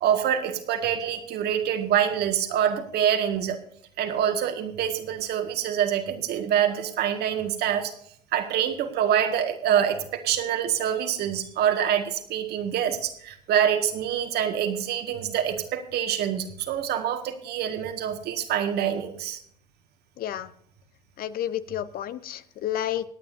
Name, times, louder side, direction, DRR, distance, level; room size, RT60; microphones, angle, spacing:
voice 1, 0.0-3.6 4.0-7.9 8.3-19.4, right 9 dB, 55° right, 1.8 m, -26 dB
voice 2, 20.2-20.5 21.2-23.0, left 11 dB, 50° left, 0.7 m, -30 dB
25.0 x 9.2 x 2.7 m
hypercardioid pair, 65°, 20 cm